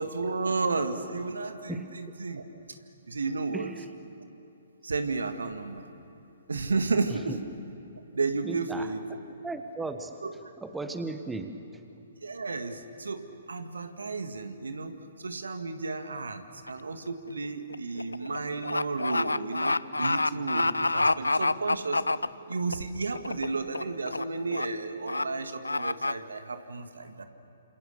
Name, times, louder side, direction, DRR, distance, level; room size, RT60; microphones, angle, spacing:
voice 1, 0.0-2.4 3.1-3.7 4.8-5.8 6.5-7.4 8.1-9.0 10.2-10.3 12.2-22.1 22.5-27.2, right 3 dB, 70° right, 8 dB, 1.9 m, -32 dB
voice 2, 3.5-3.9 8.4-8.9 9.4-10.2 10.6-11.6, right 3 dB, 5° right, 7 dB, 1.3 m, -36 dB
sound 1, 16.7-16.9 17.3-22.7 23.2-23.5 23.7-24.2 24.5-24.7 25.1-25.2 25.6-26.1, left 2 dB, 80° left, 0.5 m, -27 dB
28.5 x 27.5 x 6.9 m, 2.9 s
figure-of-eight pair, 125°, 0 cm